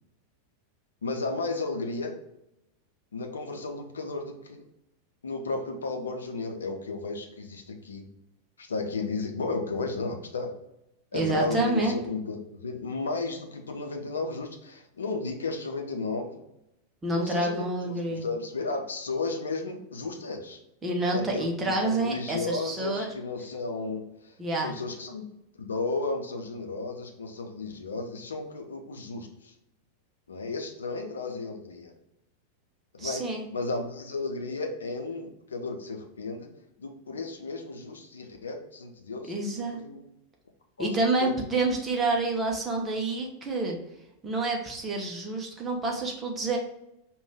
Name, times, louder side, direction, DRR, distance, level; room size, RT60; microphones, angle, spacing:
voice 1, 1.0-2.1 3.1-4.6 5.2-8.1 8.6-10.5 11.1-16.4 17.1-20.6 21.1-24.3 24.6-25.3 25.6-29.5 30.3-31.9 32.9-33.2 33.5-36.5 36.8-40.0 40.8-40.9 41.2-41.3, left 3 dB, 70° left, 4 dB, 0.7 m, -33 dB
voice 2, 11.1-12.0 17.0-18.2 20.8-23.1 24.4-24.7 33.0-33.5 39.3-39.8 40.8-43.8 44.2-46.6, right 2 dB, 20° right, 0 dB, 1.1 m, -28 dB
5.2 x 2.6 x 3.4 m, 0.86 s
figure-of-eight pair, 90°, 0 cm